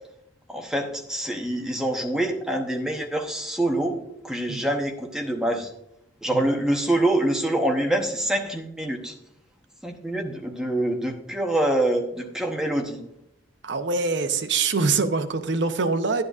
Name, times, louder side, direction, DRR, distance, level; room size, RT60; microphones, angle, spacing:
voice 1, 0.5-4.0 4.2-5.7 6.2-9.1 9.8-13.0, right 1 dB, 5° right, 2 dB, 0.9 m, -25 dB
voice 2, 13.6-16.2, right 4 dB, 65° right, 8 dB, 0.7 m, -24 dB
10.5 x 10.5 x 2.4 m, 0.79 s
head